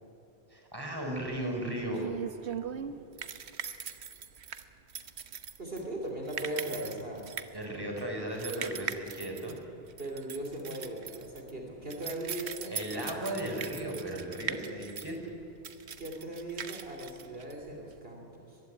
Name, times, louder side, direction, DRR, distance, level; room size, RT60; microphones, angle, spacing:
voice 1, 0.5-2.0 7.5-9.6 12.7-15.2, right 1 dB, 20° right, 1 dB, 4.2 m, -36 dB
sound 1, 1.3-18.0, right 7 dB, 80° right, 1.3 m, -41 dB
voice 2, 5.6-7.3 10.0-13.1 16.0-18.6, right 1 dB, 60° right, 1 dB, 3.2 m, -39 dB
22.0 x 15.5 x 9.9 m, 3.0 s
omnidirectional pair, 1.1 m